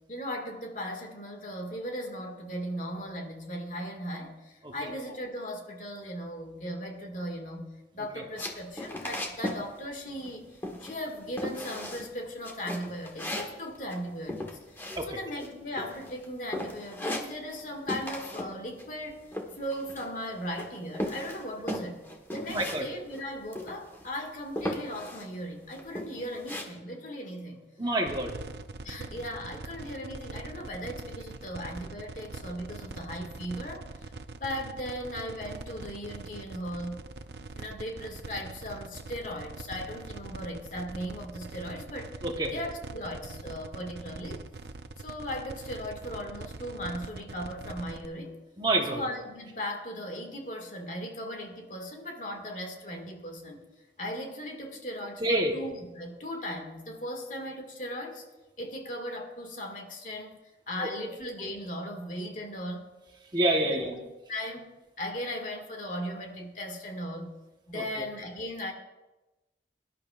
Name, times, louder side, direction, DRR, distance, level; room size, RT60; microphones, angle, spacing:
voice 1, 0.1-7.7 7.9-19.2 19.6-22.0 22.3-27.7 28.8-34.0 34.4-37.1 37.5-42.1 42.5-44.4 45.0-48.4 48.9-53.6 54.0-58.2 58.6-62.9 63.6-64.0 64.3-64.7 65.0-67.3 67.7-68.7, equal, 45° left, 2 dB, 2.1 m, -37 dB
sound 1, 8.4-9.7 9.9-10.4 10.6-11.1 11.4-12.1 12.4-15.5 15.8-16.2 16.5-17.6 17.9-18.5 18.8-20.2 20.6-22.8 23.1-23.2 23.5-24.1 24.6-25.3 25.7-26.6, left 1 dB, 15° left, 1.5 m, -36 dB
voice 2, 22.5-22.8 27.8-28.4 42.2-42.5 48.6-49.0 55.2-55.5 60.8-60.9 63.3-63.9 67.7-68.1, right 1 dB, 25° right, 2 dB, 1.2 m, -28 dB
sound 2, 28.1-48.1, right 3 dB, 70° right, 0.7 m, -43 dB
23.0 x 11.5 x 2.5 m, 1.1 s
head